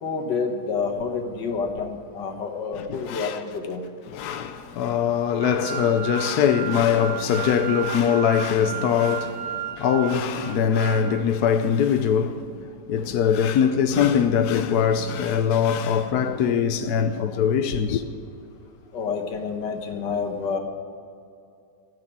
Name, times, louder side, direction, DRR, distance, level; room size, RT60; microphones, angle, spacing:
voice 1, 0.0-3.8 18.9-20.6, left 5 dB, 85° left, 2.0 m, -28 dB
voice 2, 2.8-3.4 4.1-18.0, left 7 dB, 70° left, 1.2 m, -22 dB
sound 1, 5.4-11.2, right 11 dB, 80° right, 1.6 m, -34 dB
14.5 x 6.7 x 9.9 m
omnidirectional pair, 1.8 m